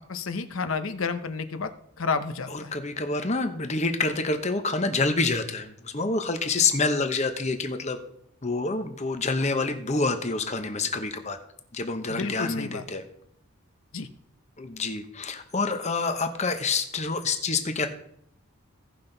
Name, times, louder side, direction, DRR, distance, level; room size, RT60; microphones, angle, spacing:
voice 1, 0.1-1.7 2.0-2.8 12.1-12.8 13.9-14.1, left 4 dB, 70° left, 10 dB, 0.8 m, -30 dB
voice 2, 2.5-8.0 8.4-11.4 11.7-13.0 14.6-17.9, left 3 dB, 30° left, 7 dB, 0.9 m, -27 dB
16.5 x 5.8 x 3.9 m, 0.72 s
head